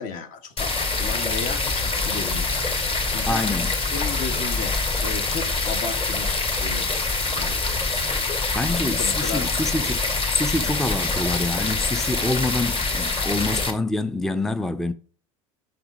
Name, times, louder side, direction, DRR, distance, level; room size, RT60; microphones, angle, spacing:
voice 1, 0.0-2.6 3.1-3.5 3.9-7.0 7.3-7.8 8.7-9.5 13.3-13.5, left 5 dB, 50° left, 1.3 m, -34 dB
sound 1, 0.6-13.7, left 3 dB, 35° left, 2.0 m, -25 dB
voice 2, 3.2-3.7 8.5-10.0 10.3-14.9, left 2 dB, ahead, 0.4 m, -26 dB
5.9 x 5.8 x 5.1 m
hypercardioid pair, 85°, 17 cm